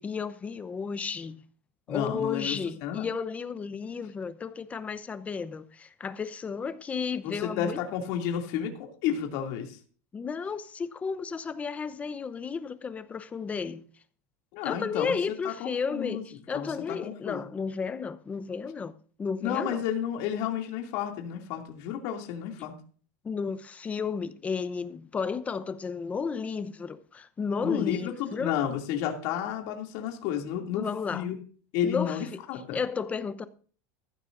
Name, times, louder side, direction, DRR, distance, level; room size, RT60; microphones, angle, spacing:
voice 1, 0.0-1.4 1.9-7.8 10.1-13.8 14.6-19.8 23.2-28.5 30.7-31.2 31.8-32.4 32.7-33.5, left 5 dB, 20° left, 0.8 m, -33 dB
voice 2, 1.9-3.1 7.2-9.8 14.5-15.2 15.4-16.2 16.5-17.4 19.4-22.7 27.6-31.3 31.7-32.8, left 9 dB, 60° left, 2.6 m, -32 dB
15.0 x 12.5 x 2.6 m
supercardioid pair, 145°, 8 cm